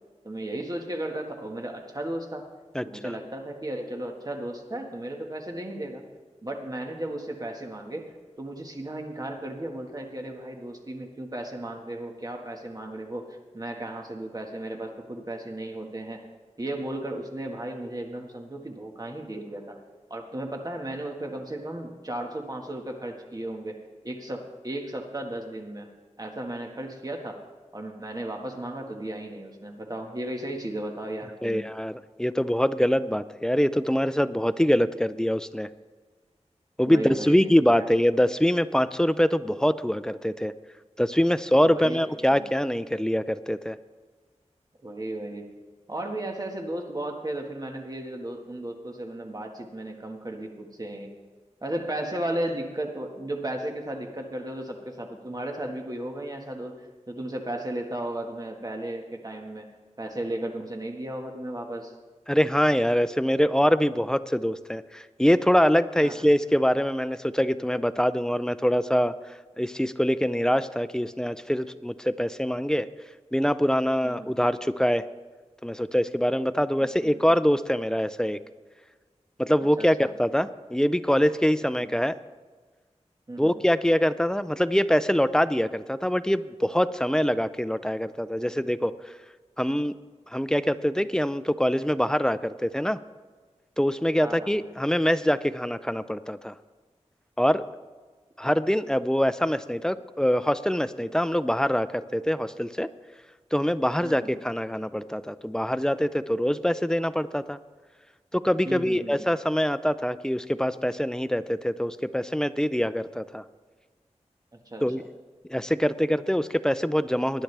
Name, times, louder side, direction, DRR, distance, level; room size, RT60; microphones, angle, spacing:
voice 1, 0.2-2.5 2.9-6.0 6.4-8.1 8.4-13.3 13.5-16.3 16.6-19.8 20.1-23.8 24.0-25.9 26.2-27.4 27.7-31.7 36.9-37.5 37.8-37.9 41.6-42.0 42.3-42.4 44.8-45.5 45.9-51.1 51.6-59.7 60.0-61.9 66.0-66.1 74.0-74.4 76.8-77.0 79.8-80.1 81.8-81.9 83.3-83.5 94.2-94.7 104.0-104.3 108.7-109.3 114.7-114.8, right 1 dB, 30° right, 2 dB, 1.6 m, -35 dB
voice 2, 2.7-3.1 31.4-35.7 36.8-40.5 41.0-43.8 62.3-69.2 69.6-72.9 73.3-75.1 75.6-78.4 79.4-82.2 83.4-88.9 89.6-89.9 90.3-93.0 93.8-96.5 97.4-97.6 98.4-102.9 103.5-107.6 108.3-113.4 114.8-115.0 115.5-117.4, equal, 5° left, 13 dB, 0.4 m, -24 dB
19.0 x 10.5 x 3.4 m, 1.4 s
wide cardioid pair, 90°, 12 cm